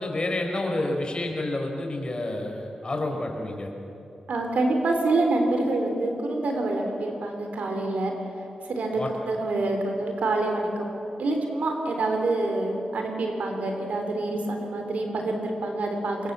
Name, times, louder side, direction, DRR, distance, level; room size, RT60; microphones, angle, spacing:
voice 1, 0.0-3.7 9.0-9.1, left 2 dB, 40° left, 2 dB, 4.9 m, -29 dB
voice 2, 4.3-8.1 8.6-16.3, right 2 dB, 80° right, 3 dB, 3.6 m, -26 dB
23.5 x 21.5 x 7.5 m, 2.8 s
cardioid pair, 60°, 2 cm